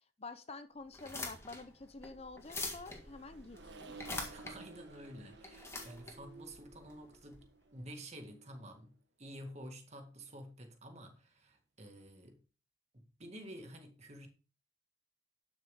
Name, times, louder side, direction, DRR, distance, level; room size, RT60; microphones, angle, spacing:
voice 1, 0.2-3.9, left 3 dB, 35° left, 0.8 m, -49 dB
sound 1, 0.9-7.4, left 2 dB, 15° left, 1.8 m, -45 dB
Accelerating revving vroom, 2.1-8.8, right 3 dB, 65° right, 1.5 m, -56 dB
voice 2, 4.3-12.4 12.9-14.3, equal, 35° right, 2.0 m, -50 dB
11.5 x 6.7 x 3.6 m
head